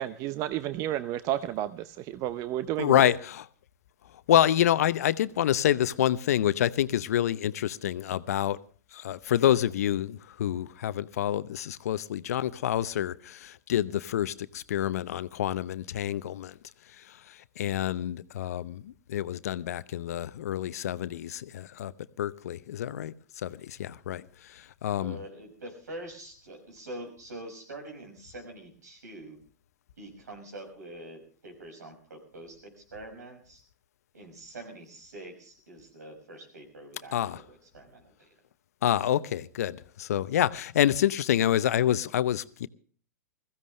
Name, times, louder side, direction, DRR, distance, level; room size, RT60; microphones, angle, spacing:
voice 1, 0.0-2.9, right 12 dB, 35° right, 0.7 m, -31 dB
voice 2, 2.8-3.5 4.3-8.6 8.9-16.6 17.0-21.9 22.2-23.1 23.4-25.2 37.1-37.4 38.8-42.7, left 11 dB, 65° left, 0.7 m, -27 dB
voice 3, 25.0-29.4 30.0-33.6 34.1-38.3, right 1 dB, 75° right, 5.9 m, -45 dB
21.0 x 15.5 x 3.2 m
figure-of-eight pair, 105°, 9 cm